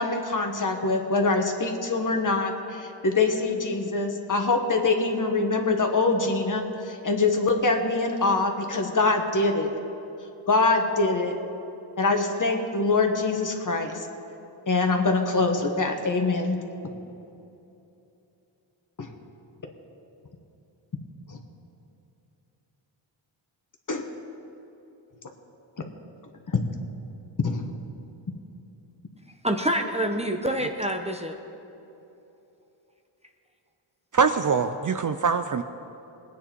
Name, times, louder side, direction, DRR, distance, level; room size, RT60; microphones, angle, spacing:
voice 1, 0.0-9.7 10.5-11.4 12.0-14.0 14.7-16.6 19.0-19.1 21.3-21.4 23.9-24.1 25.8-25.9 26.5-26.6 27.4-27.6, left 3 dB, 40° left, 4 dB, 1.6 m, -24 dB
voice 2, 29.4-31.4, right 1 dB, 15° right, 4 dB, 0.9 m, -26 dB
voice 3, 34.1-35.6, right 5 dB, 40° right, 8 dB, 0.6 m, -23 dB
20.0 x 9.3 x 4.5 m, 2.9 s
cardioid pair, 70°, 50 cm